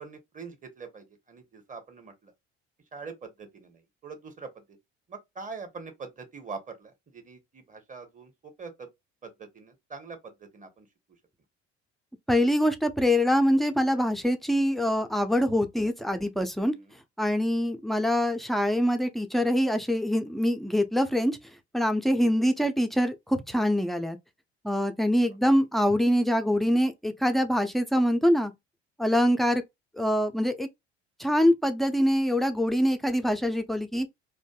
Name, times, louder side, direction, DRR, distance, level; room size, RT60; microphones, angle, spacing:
voice 1, 0.0-2.3 2.9-4.6 5.1-8.3 8.6-8.9 9.2-10.9 22.2-22.4 29.2-29.4, right 4 dB, 25° right, 1.1 m, -43 dB
voice 2, 12.3-16.7 17.2-21.4 21.7-24.2 24.6-28.5 29.0-29.6 30.0-30.7 31.2-34.1, equal, ahead, 0.5 m, -24 dB
2.6 x 2.5 x 2.3 m
figure-of-eight pair, 55°, 33 cm